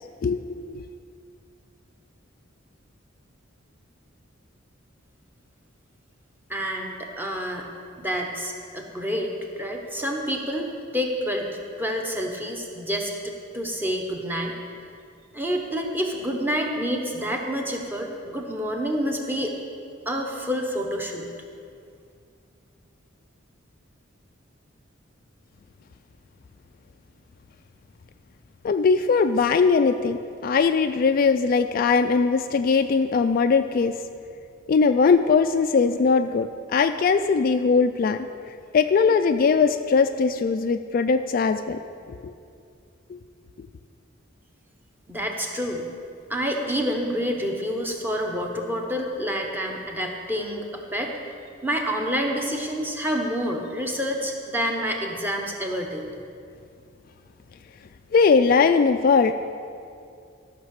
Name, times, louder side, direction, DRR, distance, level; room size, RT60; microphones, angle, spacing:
voice 1, 0.2-0.8 28.6-33.9 34.7-38.3 38.7-41.8 42.2-42.3 43.1-43.2 58.1-59.3, left 5 dB, 45° left, 9 dB, 0.3 m, -20 dB
voice 2, 6.5-7.7 8.0-14.5 15.3-19.5 20.1-21.3 45.1-45.8 46.3-51.1 51.6-56.1, equal, 10° right, 1 dB, 1.0 m, -28 dB
13.0 x 5.9 x 6.5 m, 2.4 s
head